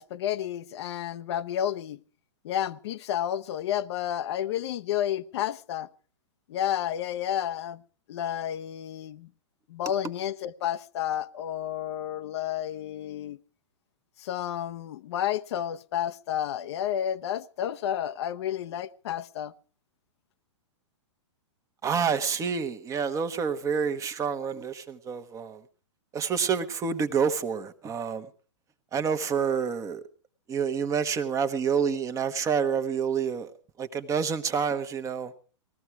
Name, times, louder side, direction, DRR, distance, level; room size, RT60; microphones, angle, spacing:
voice 1, 0.0-2.0 2.4-5.9 6.5-7.8 8.1-9.3 9.7-13.4 14.2-19.5, left 10 dB, 60° left, 0.8 m, -31 dB
voice 2, 21.8-25.6 26.1-28.3 28.9-30.0 30.5-33.5 33.8-35.3, right 6 dB, 20° right, 1.1 m, -28 dB
19.5 x 14.0 x 4.7 m
hypercardioid pair, 130°, 16 cm